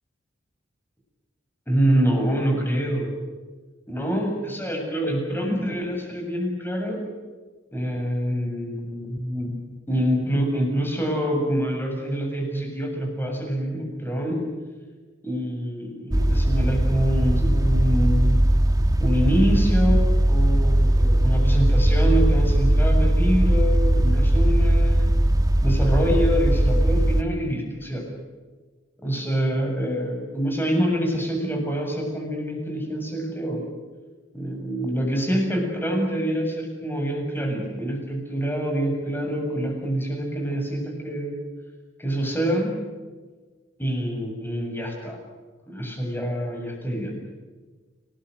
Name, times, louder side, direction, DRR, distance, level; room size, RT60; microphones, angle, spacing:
voice 1, 1.7-3.1 3.9-7.0 7.7-9.5 9.9-14.5 15.2-18.4 19.0-25.1 25.6-28.0 29.0-33.6 34.3-41.3 42.0-42.7 43.8-45.2 45.7-47.1, equal, 10° left, 2 dB, 7.5 m, -26 dB
sound 1, 16.1-27.2, right 1 dB, 20° right, 1.3 m, -19 dB
29.5 x 20.0 x 8.0 m, 1.3 s
head